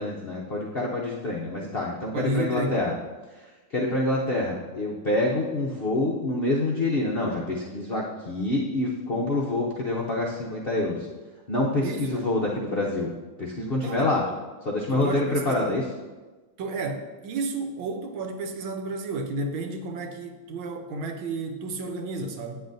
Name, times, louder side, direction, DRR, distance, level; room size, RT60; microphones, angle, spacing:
voice 1, 0.0-2.9 3.7-11.1 11.5-13.1 13.4-14.2 14.6-15.8, left 2 dB, 80° left, -3 dB, 0.5 m, -26 dB
voice 2, 2.1-2.8 11.8-12.3 13.8-14.4 14.9-15.8 16.6-22.6, right 3 dB, 90° right, 5 dB, 1.6 m, -32 dB
8.9 x 7.9 x 2.6 m, 1.2 s
omnidirectional pair, 2.1 m